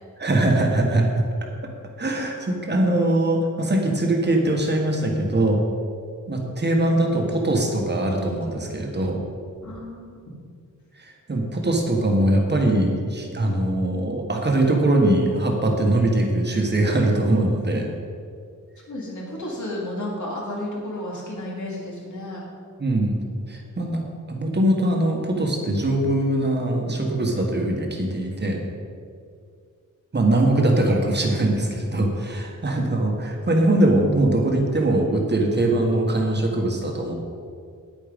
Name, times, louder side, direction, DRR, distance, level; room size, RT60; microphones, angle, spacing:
voice 1, 0.2-1.3 2.0-5.6 6.3-9.2 11.0-17.9 22.8-23.2 23.5-24.0 24.3-28.6 30.1-37.1, right 1 dB, 35° right, 1 dB, 1.5 m, -22 dB
voice 2, 9.6-10.3 18.9-22.5, left 1 dB, 65° left, -3 dB, 2.8 m, -32 dB
9.9 x 9.0 x 5.2 m, 2.3 s
wide cardioid pair, 170°, 32 cm